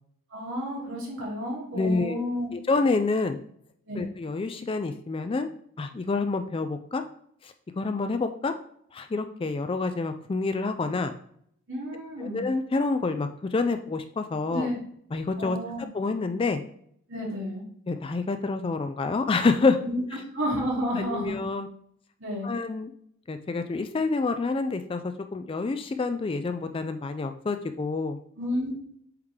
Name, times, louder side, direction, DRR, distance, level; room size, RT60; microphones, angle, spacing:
voice 1, 0.3-2.5 3.9-4.1 11.7-12.4 14.5-14.7 15.4-15.9 17.1-17.6 19.9-20.0 20.3-21.4 22.2-22.5 28.4-28.7, equal, 60° right, -4 dB, 2.5 m, -31 dB
voice 2, 1.7-3.4 3.9-5.5 5.8-7.0 7.4-8.5 8.9-11.1 12.2-14.7 15.1-15.6 15.9-16.6 17.9-19.8 20.1-20.2 21.0-21.7 22.4-22.9 23.3-28.2, left 3 dB, 25° left, 8 dB, 0.3 m, -28 dB
7.9 x 3.6 x 3.3 m, 0.66 s
head